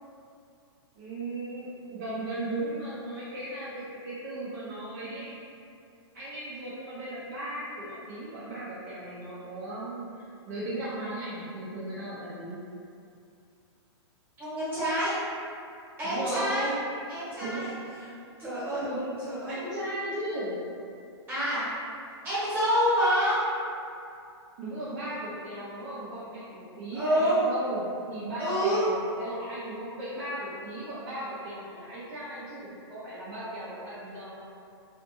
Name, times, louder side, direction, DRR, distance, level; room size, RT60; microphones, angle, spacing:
voice 1, 1.0-5.3 6.1-12.6 16.0-16.8 17.4-17.6 18.8-19.1 19.5-20.6 24.6-34.4, right 1 dB, 40° right, -11 dB, 0.5 m, -36 dB
voice 2, 14.4-15.1 16.0-16.7 17.1-17.7 18.4-18.8 19.2-19.5 21.3-21.6 22.2-23.4 26.9-27.4 28.4-28.9, equal, 15° right, -13 dB, 1.1 m, -27 dB
2.5 x 2.5 x 2.6 m, 2.5 s
hypercardioid pair, 160°, 15 cm